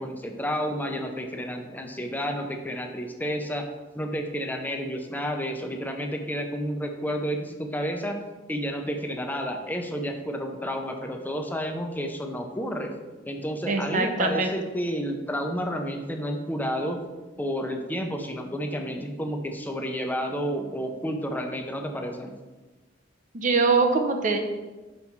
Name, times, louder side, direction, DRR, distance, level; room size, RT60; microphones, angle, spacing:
voice 1, 0.0-3.7 3.9-8.2 8.5-12.9 13.2-17.0 17.4-22.3, equal, 10° left, 4 dB, 0.6 m, -30 dB
voice 2, 13.7-14.6 23.3-24.4, right 4 dB, 45° right, 4 dB, 0.8 m, -23 dB
5.6 x 5.5 x 4.6 m, 1.2 s
head